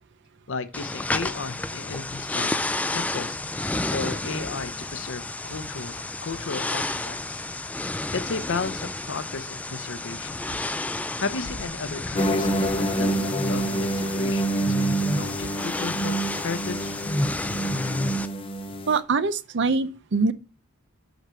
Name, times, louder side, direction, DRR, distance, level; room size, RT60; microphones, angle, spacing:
voice 1, 0.5-2.5 2.9-3.4 3.9-6.0 6.2-7.4 8.1-10.4 11.2-17.0, left 4 dB, 60° left, 0.7 m, -34 dB
sound 1, 0.7-18.3, left 2 dB, 5° left, 0.3 m, -31 dB
sound 2, 12.2-19.0, right 1 dB, 25° left, 0.8 m, -27 dB
voice 2, 18.9-20.3, right 4 dB, 55° right, 0.6 m, -23 dB
8.1 x 5.0 x 4.4 m
head